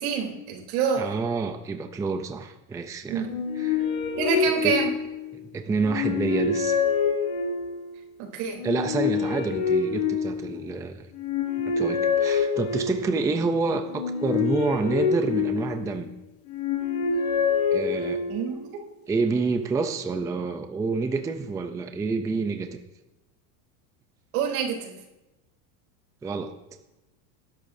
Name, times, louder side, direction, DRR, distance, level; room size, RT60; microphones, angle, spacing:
voice 1, 0.0-1.1 3.1-3.3 4.2-4.9 8.2-8.6 18.3-18.6 24.3-24.9, right 6 dB, 75° right, 0 dB, 3.5 m, -26 dB
voice 2, 1.0-3.3 3.5-3.9 4.6-4.7 5.5-6.8 8.6-11.1 11.7-16.1 17.7-18.2 19.1-22.8 26.2-26.5, right 4 dB, 10° right, 7 dB, 0.5 m, -28 dB
sound 1, 3.2-5.3 5.8-7.8 8.5-10.7 11.1-13.2 13.9-16.0 16.5-18.5, left 6 dB, 80° left, 5.3 m, -26 dB
19.5 x 11.5 x 2.7 m, 0.98 s
supercardioid pair, 140°, 43 cm